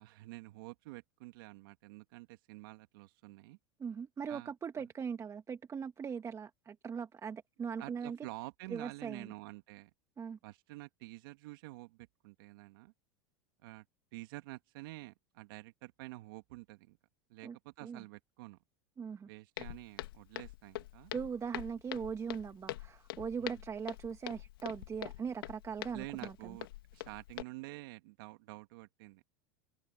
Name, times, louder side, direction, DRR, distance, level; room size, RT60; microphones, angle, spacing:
voice 1, 0.0-3.6 4.3-4.9 7.8-9.9 10.4-12.9 13.6-13.8 14.1-17.0 17.3-18.6 19.2-21.1 23.4-23.6 25.9-26.7 26.9-29.2, right 21 dB, 70° right, 2.3 m, -49 dB
voice 2, 3.8-8.2 8.7-9.3 10.2-10.4 17.4-17.6 17.8-18.0 19.0-19.3 21.1-26.6, right 6 dB, 25° right, 1.7 m, -40 dB
Walk footsteps, 19.6-27.4, left 16 dB, 80° left, 2.1 m, -45 dB
hypercardioid pair, 105°, 12 cm